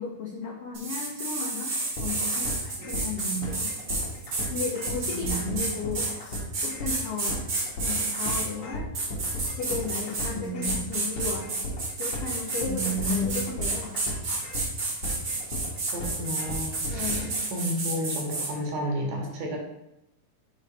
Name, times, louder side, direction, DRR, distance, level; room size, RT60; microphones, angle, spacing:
voice 1, 0.0-1.8 2.0-3.7 4.5-6.2 6.6-7.4 7.8-8.9 9.5-11.5 12.0-14.2 16.9-17.5, left 5 dB, 85° left, -1 dB, 1.3 m, -35 dB
sound 1, 0.7-8.5 8.9-10.3 10.6-18.5, right 3 dB, 45° right, 1.3 m, -30 dB
sound 2, 2.0-17.4, left 1 dB, 55° left, 1.9 m, -36 dB
voice 2, 2.8-3.5 5.1-5.6 10.3-10.7 12.7-13.3 15.9-19.6, equal, 65° right, 0 dB, 2.1 m, -32 dB
5.4 x 3.3 x 5.2 m, 0.89 s
omnidirectional pair, 3.8 m